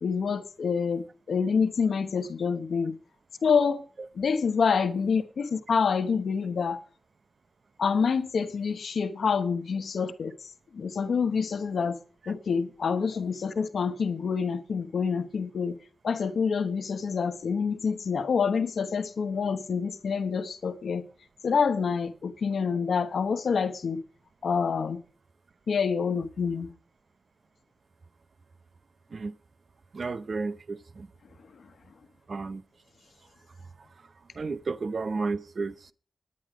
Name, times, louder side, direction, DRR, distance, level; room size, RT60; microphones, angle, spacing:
voice 1, 0.0-3.0 3.4-3.8 4.2-6.8 7.8-10.3 10.7-12.0 12.3-15.7 16.0-21.0 21.4-24.0 24.4-25.0 25.7-26.7, left 5 dB, 85° left, 1.1 m, -27 dB
voice 2, 29.9-31.1 32.3-32.6 34.3-35.9, right 4 dB, 55° right, 0.7 m, -32 dB
10.5 x 9.7 x 4.9 m
wide cardioid pair, 110°, 0 cm